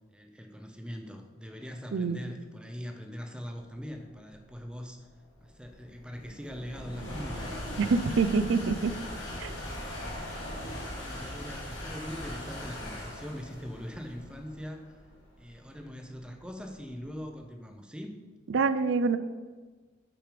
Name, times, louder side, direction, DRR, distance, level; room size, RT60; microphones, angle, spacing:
voice 1, 0.1-5.1 5.4-7.6 10.9-15.0 15.4-18.2, equal, 5° right, 5 dB, 0.5 m, -42 dB
sound 1, 3.9-17.2, left 1 dB, 70° left, 1.8 m, -40 dB
voice 2, 7.8-8.9 9.4-9.5 18.5-19.2, right 4 dB, 65° right, 13 dB, 0.4 m, -26 dB
6.0 x 4.9 x 5.1 m, 1.4 s
head